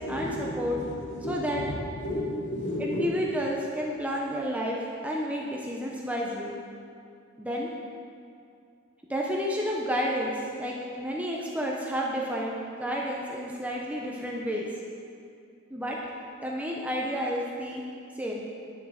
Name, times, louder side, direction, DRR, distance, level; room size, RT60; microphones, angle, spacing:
voice 1, 0.0-3.4, left 1 dB, 55° left, -6 dB, 3.0 m, -33 dB
voice 2, 1.3-1.6 2.8-6.5 7.4-7.7 9.1-14.7 15.7-16.0 16.4-17.8 18.2-18.5, equal, 5° right, -3 dB, 0.8 m, -31 dB
10.5 x 7.5 x 6.5 m, 2.4 s
head